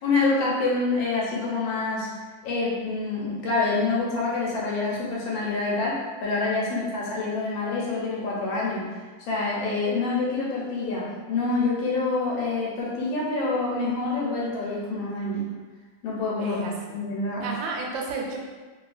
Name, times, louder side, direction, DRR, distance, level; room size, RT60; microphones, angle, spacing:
voice 1, 0.0-2.1 2.4-8.9 9.2-15.4 16.0-16.6 16.9-17.5, left 3 dB, 85° left, -5 dB, 1.4 m, -26 dB
voice 2, 16.4-17.0 17.4-18.4, right 3 dB, 85° right, -1 dB, 1.3 m, -32 dB
2.8 x 2.7 x 2.4 m, 1.4 s
omnidirectional pair, 2.0 m